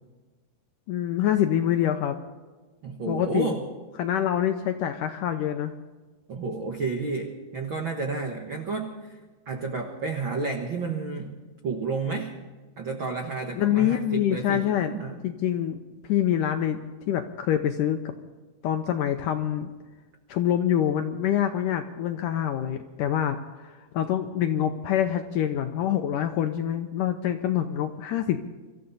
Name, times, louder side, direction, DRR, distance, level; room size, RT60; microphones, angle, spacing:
voice 1, 0.9-2.2 3.1-3.6 4.0-5.7 13.5-14.9 15.2-18.1 18.6-19.7 20.3-28.4, left 10 dB, 80° left, 6 dB, 1.9 m, -26 dB
voice 2, 2.8-3.6 6.3-9.0 9.4-11.3 11.6-12.3 12.8-15.2, right 4 dB, 75° right, 2 dB, 1.1 m, -31 dB
25.0 x 14.0 x 4.1 m, 1.3 s
omnidirectional pair, 4.5 m